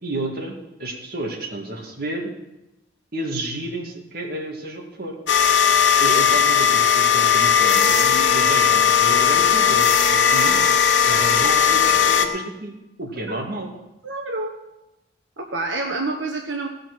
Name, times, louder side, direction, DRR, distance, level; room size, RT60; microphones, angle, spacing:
voice 1, 0.0-2.3 3.1-5.2 6.0-10.6 11.1-13.8, right 1 dB, 55° right, 1 dB, 2.2 m, -31 dB
sound 1, 5.3-12.3, left 7 dB, 80° left, 1.1 m, -17 dB
Wind instrument woodwind instrument, 7.6-12.5, left 5 dB, 35° left, 0.5 m, -30 dB
voice 2, 14.0-14.5 15.4-16.7, right 2 dB, 90° right, 2 dB, 1.2 m, -28 dB
16.5 x 6.4 x 6.3 m, 0.95 s
head